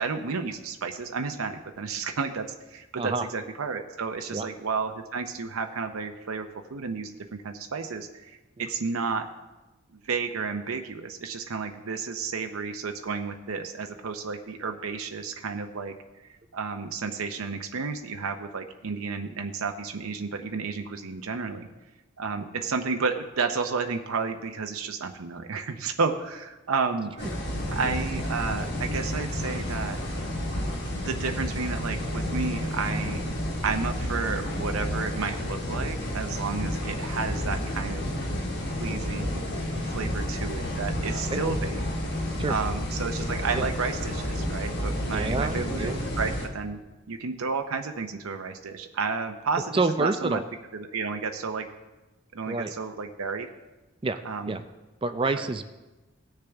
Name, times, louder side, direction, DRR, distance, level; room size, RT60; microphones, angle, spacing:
voice 1, 0.0-8.1 8.6-9.3 10.0-15.9 16.5-21.7 22.2-27.1 27.7-30.0 30.9-33.2 33.6-38.0 38.8-39.4 39.9-41.8 42.5-46.8 47.1-50.4 50.7-51.7 52.3-53.5 54.2-54.6 55.4-55.5, right 4 dB, 90° right, 5 dB, 0.7 m, -31 dB
sound 1, 27.2-46.5, left 1 dB, 55° left, 1.5 m, -30 dB
voice 2, 45.1-46.0 49.7-50.4 52.5-52.7 54.0-54.2 54.5-54.6 55.0-55.6, right 3 dB, 25° right, 9 dB, 0.4 m, -28 dB
17.0 x 6.7 x 3.5 m, 1.1 s
head